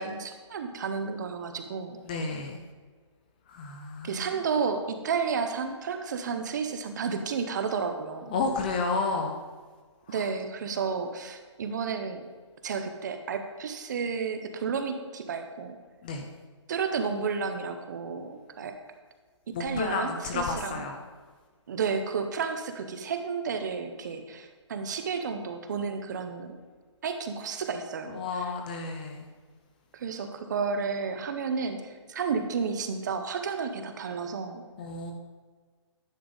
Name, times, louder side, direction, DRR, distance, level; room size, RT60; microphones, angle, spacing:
voice 1, 0.0-2.0 4.0-8.4 10.1-12.2 12.6-15.8 16.7-18.8 19.6-20.8 21.7-26.6 27.0-28.5 29.9-34.6, right 5 dB, 40° right, 7 dB, 0.7 m, -32 dB
voice 2, 2.0-2.6 3.5-4.4 8.3-9.4 10.1-10.3 16.0-16.3 19.5-21.0 28.1-29.3 34.8-35.1, left 4 dB, 15° left, 3 dB, 0.4 m, -31 dB
10.5 x 3.6 x 5.3 m, 1.5 s
hypercardioid pair, 160°, 16 cm